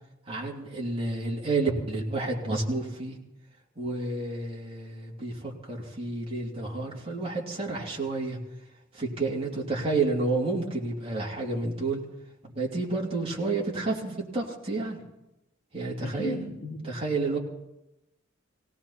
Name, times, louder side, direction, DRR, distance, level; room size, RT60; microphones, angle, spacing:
voice 1, 0.3-3.1 3.8-8.4 8.9-12.0 12.4-15.0 15.7-16.4 16.8-17.4, right 3 dB, 30° right, -2 dB, 3.0 m, -30 dB
voice 2, 16.0-16.8, left 1 dB, 45° left, -6 dB, 3.6 m, -34 dB
19.0 x 17.5 x 4.3 m, 0.89 s
head